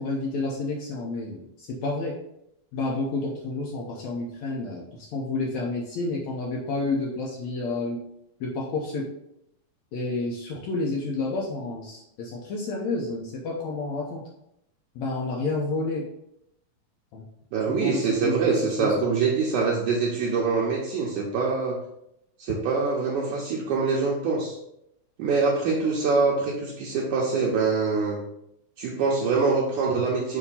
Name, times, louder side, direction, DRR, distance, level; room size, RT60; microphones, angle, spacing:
voice 1, 0.0-2.1 2.7-8.0 8.4-9.1 9.9-14.2 15.0-16.1 17.1-17.2 17.7-19.0, left 3 dB, 80° left, -3 dB, 1.6 m, -30 dB
voice 2, 17.5-21.8 22.4-24.6 25.2-28.2 28.8-30.4, right 4 dB, 70° right, -3 dB, 2.0 m, -24 dB
7.0 x 2.7 x 5.5 m, 0.80 s
omnidirectional pair, 4.3 m